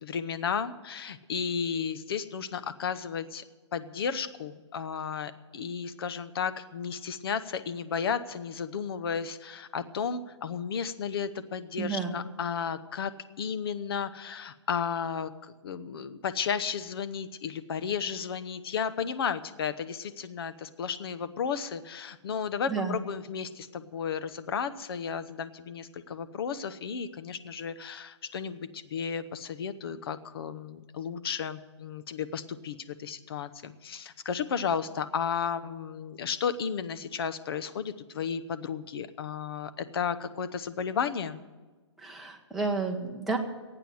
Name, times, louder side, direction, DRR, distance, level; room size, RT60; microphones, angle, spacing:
voice 1, 0.0-3.4 3.7-13.1 13.4-41.4, left 7 dB, 55° left, 12 dB, 1.0 m, -33 dB
voice 2, 11.8-12.2 22.7-23.0 42.0-43.4, right 4 dB, ahead, -1 dB, 1.2 m, -31 dB
16.0 x 9.0 x 7.8 m, 1.3 s
hypercardioid pair, 155°, 15 cm